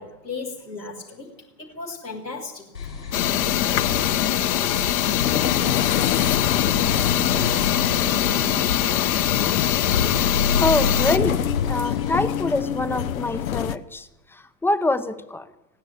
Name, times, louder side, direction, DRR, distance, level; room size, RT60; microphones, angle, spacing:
voice 1, 0.0-1.3 1.6-2.7, left 4 dB, 90° left, -2 dB, 3.2 m, -35 dB
sound 1, 2.7-12.2, left 5 dB, 75° left, 7.1 m, -29 dB
sound 2, 3.1-11.2, left 12 dB, 30° left, 1.1 m, -23 dB
sound 3, 3.2-13.8, left 10 dB, 55° left, 0.9 m, -27 dB
voice 2, 10.6-11.4 11.7-15.5, left 2 dB, 5° left, 13 dB, 0.8 m, -25 dB
19.5 x 16.5 x 8.4 m, 0.90 s
figure-of-eight pair, 100°, 49 cm